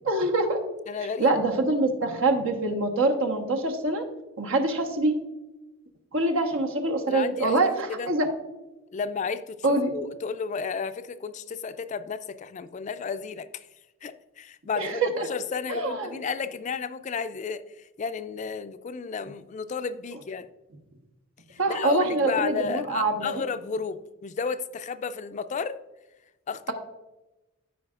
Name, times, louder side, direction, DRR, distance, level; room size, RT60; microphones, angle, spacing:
voice 1, 0.0-0.6 1.2-4.0 4.4-5.1 6.1-8.3 9.6-9.9 14.8-15.3 15.7-16.1 21.6-23.4, right 2 dB, 85° right, 2 dB, 1.2 m, -25 dB
voice 2, 0.9-1.3 7.1-7.6 7.9-8.1 8.9-13.7 14.0-17.6 18.0-20.5 21.5-25.8 26.5-26.7, left 5 dB, 35° left, 12 dB, 0.3 m, -32 dB
13.5 x 4.9 x 2.4 m, 1.0 s
head